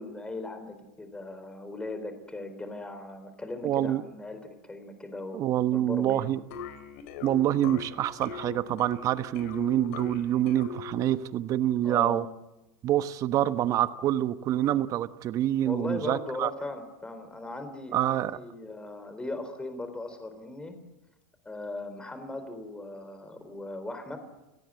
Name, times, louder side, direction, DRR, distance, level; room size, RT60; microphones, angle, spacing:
voice 1, 0.0-5.4 5.7-6.3 11.8-12.4 15.6-20.8 21.4-24.2, left 2 dB, 10° left, 8 dB, 4.1 m, -38 dB
voice 2, 3.6-4.0 5.3-6.4 7.2-12.2 12.8-16.5 17.9-18.3, right 12 dB, 40° right, 12 dB, 1.2 m, -26 dB
sound 1, 6.5-11.3, left 6 dB, 70° left, 4.0 m, -41 dB
30.0 x 18.0 x 7.8 m, 1.0 s
supercardioid pair, 110°, 8 cm